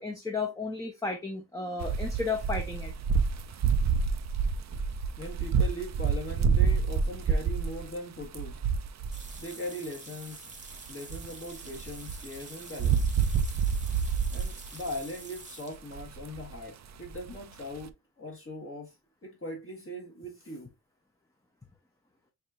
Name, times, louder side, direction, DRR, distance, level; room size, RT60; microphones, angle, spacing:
voice 1, 0.0-2.9, left 4 dB, 10° left, 0.7 m, -33 dB
sound 1, 1.8-7.9 8.2-9.4 10.6-12.4 12.8-15.0 16.0-16.5 17.0-17.3 17.8-17.9, right 6 dB, 50° right, 0.5 m, -28 dB
voice 2, 5.2-8.6 9.4-10.5 10.9-13.1 14.3-19.0 19.2-20.7, equal, 40° left, 1.5 m, -40 dB
sound 2, 9.1-15.8, right 3 dB, 20° right, 1.0 m, -47 dB
6.4 x 2.8 x 2.5 m
wide cardioid pair, 120°, 35 cm